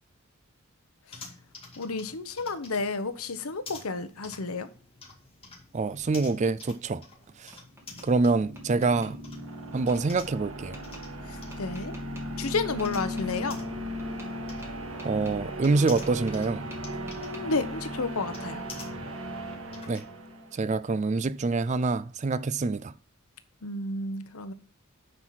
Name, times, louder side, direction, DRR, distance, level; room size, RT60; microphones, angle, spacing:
sound 1, 1.1-20.0, left 3 dB, 25° left, 2.0 m, -50 dB
voice 1, 1.8-4.7 11.3-12.0 12.4-13.6 17.2-18.6 23.6-24.5, left 3 dB, 85° left, 1.0 m, -31 dB
voice 2, 5.7-7.0 7.4-7.5 8.0-9.2 9.7-10.8 15.0-16.7 19.9-20.0 20.5-22.9, right 3 dB, 35° right, 0.4 m, -26 dB
Tap, 7.0-8.1 8.6-9.1 9.9-10.0 10.7-11.0 11.5-12.2 12.8-13.3 14.0-14.3 14.6-16.5 16.7-17.4, right 1 dB, 10° right, 2.3 m, -49 dB
sound 2, 7.7-20.7, equal, 70° right, 1.7 m, -37 dB
9.7 x 4.7 x 5.7 m
head